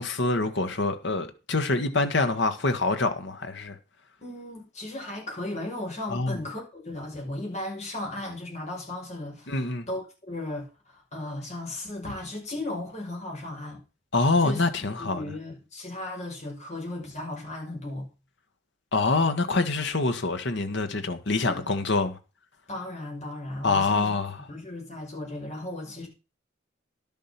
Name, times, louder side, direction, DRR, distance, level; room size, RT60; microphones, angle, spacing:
voice 1, 0.0-3.7 6.1-6.4 9.5-9.9 14.1-15.2 18.9-22.1 23.6-24.5, left 3 dB, 60° left, 1.5 m, -25 dB
voice 2, 4.2-13.8 14.4-18.1 21.4-21.7 22.7-24.2 24.5-26.1, left 1 dB, 35° left, 5.7 m, -36 dB
11.5 x 7.4 x 5.9 m
head